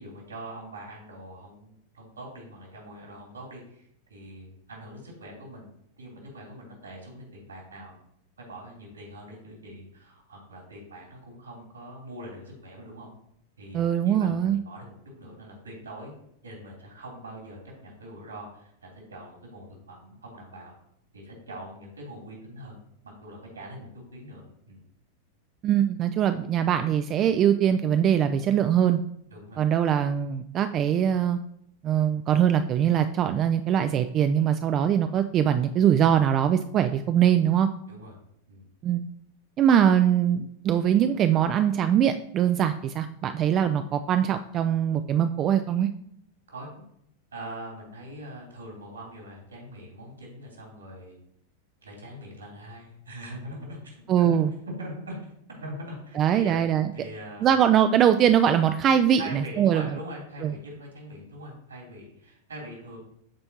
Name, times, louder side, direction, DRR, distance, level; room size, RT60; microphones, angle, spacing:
voice 1, 0.0-8.0 8.4-13.1 13.6-16.1 16.4-20.7 21.1-22.8 23.0-24.8 29.3-29.6 37.9-38.1 38.5-38.6 46.5-46.8 47.3-51.2 51.8-54.4 54.6-57.5 59.2-63.0, right 1 dB, 75° right, -2 dB, 2.9 m, -42 dB
voice 2, 13.7-14.6 25.6-29.0 29.6-31.4 31.8-37.7 38.8-39.0 39.6-45.9 54.1-54.5 56.2-56.9 57.4-59.8 60.4-60.5, right 9 dB, 30° right, 9 dB, 0.3 m, -22 dB
12.5 x 4.3 x 2.8 m, 0.72 s
figure-of-eight pair, 90°, 0 cm